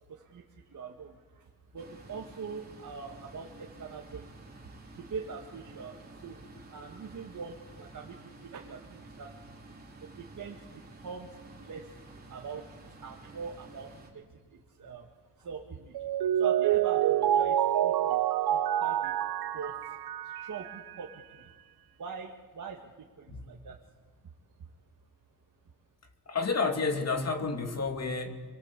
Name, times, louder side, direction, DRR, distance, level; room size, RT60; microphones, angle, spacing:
voice 1, 0.1-4.5 5.0-9.6 10.0-11.9 12.3-14.2 14.5-15.1 15.4-16.0 16.3-18.2 18.5-19.1 19.5-19.8 20.2-21.5 22.0-23.8, right 5 dB, 50° right, 0 dB, 2.0 m, -43 dB
sound 1, 1.8-14.1, right 2 dB, 25° right, 4.3 m, -51 dB
Mallet percussion, 15.9-20.9, right 11 dB, 75° right, 0.8 m, -27 dB
voice 2, 26.3-28.4, left 4 dB, 40° left, 5 dB, 2.4 m, -30 dB
29.5 x 23.0 x 8.4 m, 1.4 s
wide cardioid pair, 165°, 38 cm